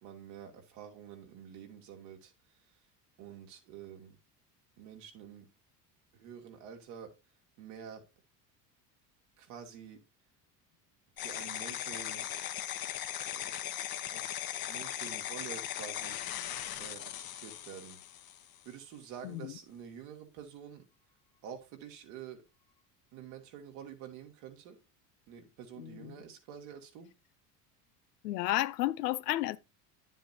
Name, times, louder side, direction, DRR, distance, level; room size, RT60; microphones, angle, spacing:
voice 1, 0.0-2.6 3.2-4.2 4.8-5.5 6.1-7.1 7.6-8.1 9.4-10.0 11.2-12.3 13.3-13.5 14.1-14.4 14.7-16.2 16.7-18.0 18.6-20.8 21.4-22.5 23.1-24.8 25.3-27.1, right 8 dB, 70° right, 2.6 m, -48 dB
sound 1, 11.2-18.7, left 11 dB, 50° left, 1.2 m, -39 dB
voice 2, 19.2-19.6 25.8-26.1 28.2-29.6, left 16 dB, 85° left, 0.7 m, -32 dB
10.0 x 7.6 x 2.8 m
hypercardioid pair, 75°, 47 cm